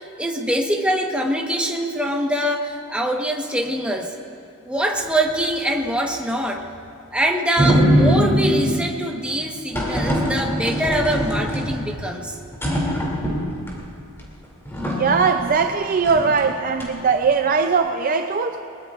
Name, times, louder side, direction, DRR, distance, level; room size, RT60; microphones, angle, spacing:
voice 1, 0.2-4.1 4.6-6.7 7.1-12.3, right 1 dB, 5° right, 1 dB, 1.2 m, -23 dB
sound 1, 7.6-8.9 9.7-12.1 12.5-13.7 14.2-14.3 14.6-15.7 16.0-16.4 16.8-17.3, equal, 10° left, 2.7 m, -22 dB
voice 2, 15.0-18.6, right 5 dB, 40° right, 6 dB, 0.5 m, -20 dB
22.0 x 21.5 x 2.5 m, 2.7 s
head